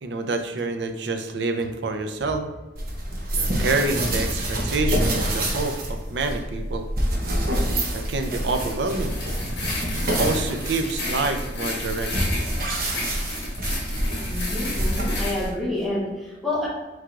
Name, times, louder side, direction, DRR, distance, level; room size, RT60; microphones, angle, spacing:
voice 1, 0.0-2.5 3.3-6.9 7.9-9.2 10.1-12.4, right 3 dB, 70° right, 6 dB, 0.5 m, -27 dB
sound 1, 2.8-15.5, right 1 dB, 55° right, 0.9 m, -27 dB
sound 2, 8.5-15.5, left 2 dB, 75° left, 1.5 m, -33 dB
voice 2, 14.3-16.7, left 1 dB, ahead, -6 dB, 1.1 m, -28 dB
4.7 x 4.6 x 2.4 m, 1.2 s
head